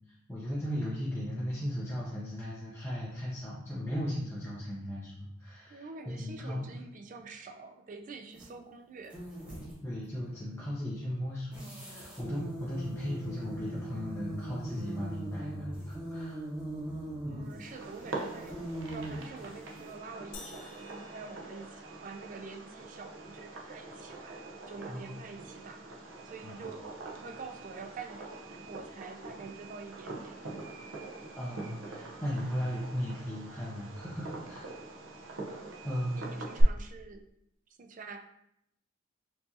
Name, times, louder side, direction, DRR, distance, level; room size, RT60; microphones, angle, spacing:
voice 1, 0.3-5.9 6.2-6.7 9.8-16.5 17.3-17.5 24.9-25.2 26.4-26.6 31.4-34.7 35.8-36.3, equal, 10° left, -7 dB, 0.6 m, -36 dB
voice 2, 5.7-9.2 17.3-18.6 18.9-24.4 24.7-25.8 26.2-30.4 36.1-37.3 37.8-38.2, right 4 dB, 40° right, 5 dB, 0.3 m, -46 dB
sound 1, 8.3-8.5 9.0-9.8 11.5-19.9, right 1 dB, 5° right, 0.9 m, -41 dB
Fireworks, 17.6-36.6, right 2 dB, 70° right, 0.6 m, -43 dB
sound 2, 20.3-22.3, left 4 dB, 65° left, 0.7 m, -51 dB
4.6 x 2.6 x 2.7 m, 0.78 s
head